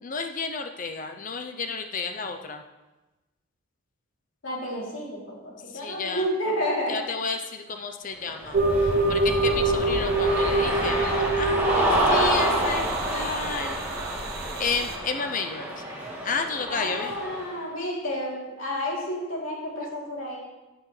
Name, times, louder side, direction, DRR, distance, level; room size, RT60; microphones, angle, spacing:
voice 1, 0.0-2.6 5.7-6.3 6.9-8.6 9.1-13.8 14.6-15.8 16.2-17.2, left 4 dB, 40° left, 6 dB, 0.6 m, -31 dB
voice 2, 4.4-6.9 16.7-20.4, equal, 70° left, -4 dB, 3.1 m, -30 dB
Cheering, 8.3-17.5, right 1 dB, 10° right, 2.7 m, -28 dB
sound 1, 8.5-15.0, right 2 dB, 45° right, 0.9 m, -26 dB
14.5 x 7.9 x 3.2 m, 1.1 s
head